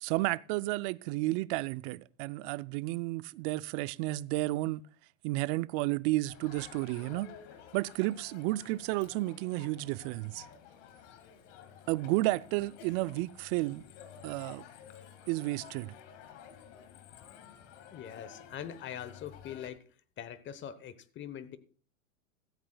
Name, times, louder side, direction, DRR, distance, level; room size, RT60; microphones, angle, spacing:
voice 1, 0.0-4.8 5.2-7.3 7.7-10.5 11.9-13.8 14.2-14.6 15.3-15.9, right 19 dB, 45° right, 0.5 m, -32 dB
Crowd, 6.2-19.7, left 8 dB, 60° left, 2.0 m, -52 dB
voice 2, 17.9-19.8 20.2-21.6, left 9 dB, 30° left, 1.0 m, -43 dB
16.0 x 14.0 x 2.3 m
hypercardioid pair, 105°, 41 cm